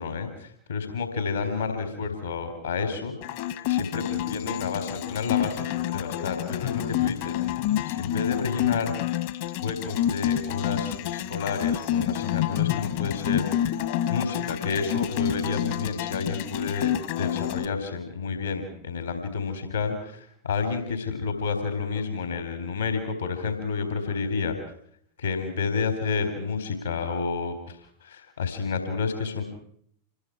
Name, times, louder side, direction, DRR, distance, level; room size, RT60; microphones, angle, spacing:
voice 1, 0.0-8.9 9.6-13.8 14.1-16.9 17.2-24.6 25.2-29.4, left 5 dB, 75° left, 7 dB, 3.8 m, -30 dB
sound 1, 3.2-17.7, left 12 dB, 50° left, 1.9 m, -28 dB
27.0 x 21.5 x 4.8 m, 0.65 s
figure-of-eight pair, 90°, 0 cm